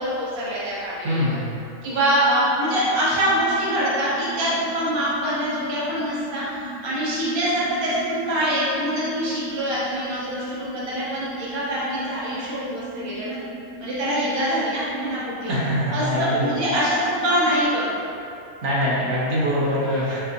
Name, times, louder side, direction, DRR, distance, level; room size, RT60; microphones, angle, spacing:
voice 1, 0.0-1.4 1.8-13.4 13.8-15.5 15.9-18.0, equal, 35° right, -9 dB, 0.4 m, -24 dB
voice 2, 1.0-1.5 15.5-16.5 18.6-20.2, equal, 60° right, -7 dB, 0.9 m, -23 dB
sound 1, 2.0-17.6, right 1 dB, 55° left, 1.6 m, -38 dB
4.4 x 2.5 x 2.5 m, 2.6 s
omnidirectional pair, 1.6 m